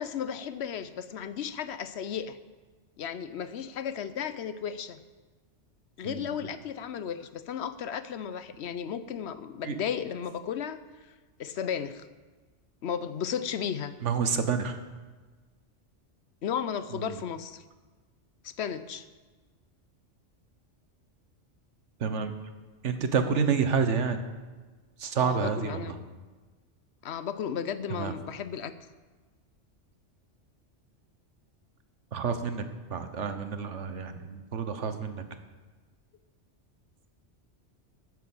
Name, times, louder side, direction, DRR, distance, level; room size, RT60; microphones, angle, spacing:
voice 1, 0.0-2.4 3.0-5.0 6.0-10.8 11.4-12.1 12.8-13.9 16.4-17.6 18.4-19.1 25.2-25.9 27.0-28.7, left 8 dB, 65° left, 13 dB, 0.9 m, -34 dB
voice 2, 14.0-14.8 16.9-17.1 22.0-22.3 22.8-24.2 25.0-25.9 27.9-28.1 32.1-32.6 32.9-35.2, right 6 dB, 80° right, 9 dB, 1.4 m, -29 dB
10.5 x 9.8 x 7.2 m, 1.3 s
omnidirectional pair, 1.2 m